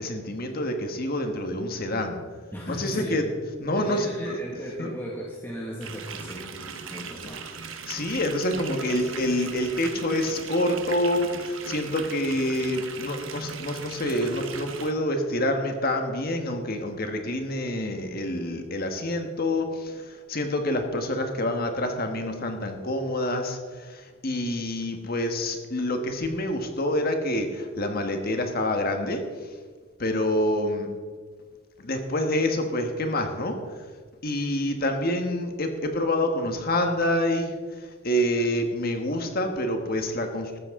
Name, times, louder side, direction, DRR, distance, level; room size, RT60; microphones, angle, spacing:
voice 1, 0.0-2.2 2.7-3.3 3.6-4.4 4.8-4.9 7.9-29.2 30.0-30.9 31.8-33.8 34.2-40.6, left 1 dB, 50° left, 5 dB, 1.4 m, -27 dB
voice 2, 2.5-3.2 3.8-7.4, equal, 10° left, -4 dB, 1.8 m, -37 dB
sound 1, 5.8-14.9, right 6 dB, 75° right, 1.1 m, -39 dB
14.0 x 13.0 x 3.7 m, 1.5 s
head